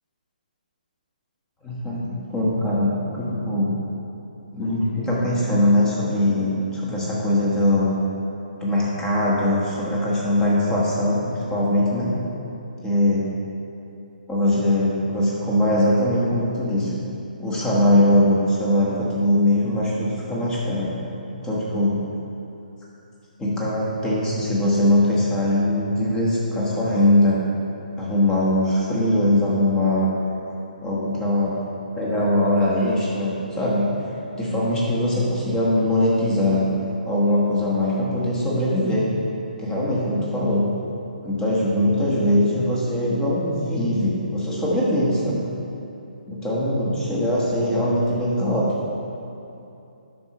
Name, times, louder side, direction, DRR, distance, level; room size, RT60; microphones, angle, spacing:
voice 1, 1.6-3.7 4.5-8.0 8.6-12.1 12.8-13.3 14.3-17.0 17.4-20.9 21.3-22.0 23.4-27.4 28.0-30.1 30.8-31.6 31.9-33.9 34.4-36.6 37.0-39.1 39.6-40.7 41.2-45.4 46.3-48.7, left 1 dB, 10° left, -6 dB, 1.2 m, -21 dB
9.4 x 6.2 x 3.0 m, 2.8 s
hypercardioid pair, 155°, 5 cm